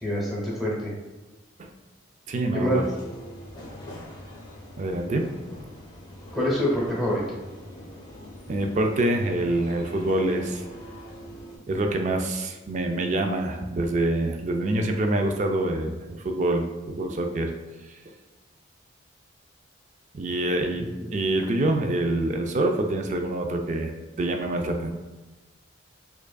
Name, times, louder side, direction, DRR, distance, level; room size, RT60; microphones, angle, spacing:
voice 1, 0.0-0.9 2.5-2.8 6.3-7.2 20.8-21.1, equal, ahead, -5 dB, 0.9 m, -26 dB
voice 2, 2.3-2.9 4.8-5.3 8.5-10.6 11.7-17.5 20.1-23.9 24.2-24.9, right 1 dB, 35° right, 4 dB, 0.3 m, -26 dB
sound 1, 2.7-11.6, equal, 20° left, 0.6 m, -42 dB
4.7 x 2.5 x 2.2 m, 1.2 s
head